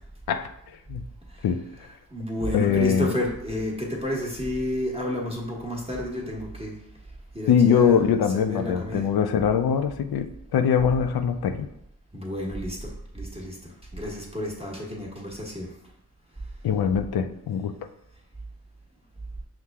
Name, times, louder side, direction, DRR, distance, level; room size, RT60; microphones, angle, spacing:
voice 1, 1.3-6.8 7.3-8.0 8.3-9.1 12.1-15.7, left 1 dB, 15° right, -3 dB, 1.2 m, -31 dB
voice 2, 2.5-3.1 7.5-11.7 16.6-17.7, left 7 dB, 70° left, 10 dB, 0.5 m, -22 dB
5.8 x 2.1 x 3.5 m, 0.78 s
cardioid pair, 45°, 39 cm